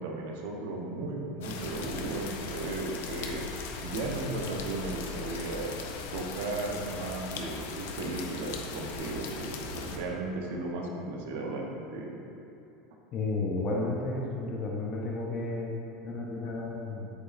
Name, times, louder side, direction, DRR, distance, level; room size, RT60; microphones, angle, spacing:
voice 1, 0.0-3.4 3.8-5.7 6.1-12.2, right 2 dB, 85° right, 0 dB, 0.9 m, -35 dB
sound 1, 1.4-10.0, left 4 dB, 90° left, 0.6 m, -39 dB
voice 2, 13.1-15.8 16.0-17.1, left 2 dB, 35° left, -3 dB, 0.7 m, -32 dB
8.2 x 5.0 x 2.6 m, 2.8 s
supercardioid pair, 150°, 0 cm